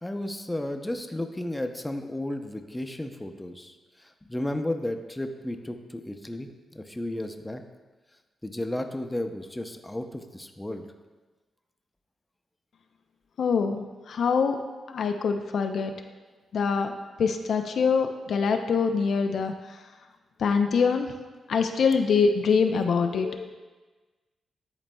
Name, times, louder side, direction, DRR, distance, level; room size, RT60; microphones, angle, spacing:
voice 1, 0.0-3.7 4.0-7.6 8.4-10.8, left 1 dB, 15° left, 6 dB, 0.6 m, -33 dB
voice 2, 13.4-14.6 14.9-15.9 16.5-16.9 17.2-19.5 20.4-21.1 21.5-23.5, left 5 dB, 70° left, 5 dB, 0.4 m, -24 dB
10.5 x 4.0 x 2.2 m, 1.3 s
supercardioid pair, 50°, 0 cm